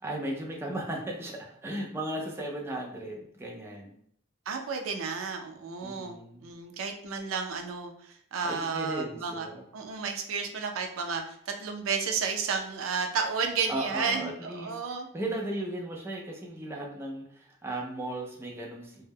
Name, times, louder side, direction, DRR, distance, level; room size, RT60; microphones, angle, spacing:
voice 1, 0.0-4.0 5.8-6.5 8.4-9.6 13.7-19.0, right 1 dB, 10° right, -1 dB, 0.4 m, -36 dB
voice 2, 4.5-9.5 9.7-15.1, right 5 dB, 80° right, 4 dB, 0.4 m, -32 dB
2.2 x 2.0 x 3.3 m, 0.67 s
head